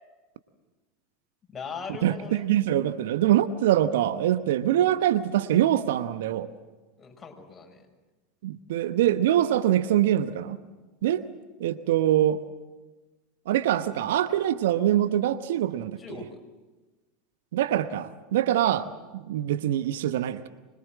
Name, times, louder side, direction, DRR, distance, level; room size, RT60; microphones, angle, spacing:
voice 1, 1.5-2.5 7.0-7.9 16.0-16.4, left 5 dB, 20° left, 2 dB, 6.0 m, -39 dB
voice 2, 2.0-6.5 8.4-10.6 11.0-11.2 11.6-12.4 13.5-16.0 17.5-20.5, right 12 dB, 65° right, 12 dB, 1.0 m, -24 dB
25.0 x 22.5 x 7.5 m, 1.2 s
figure-of-eight pair, 80°, 0 cm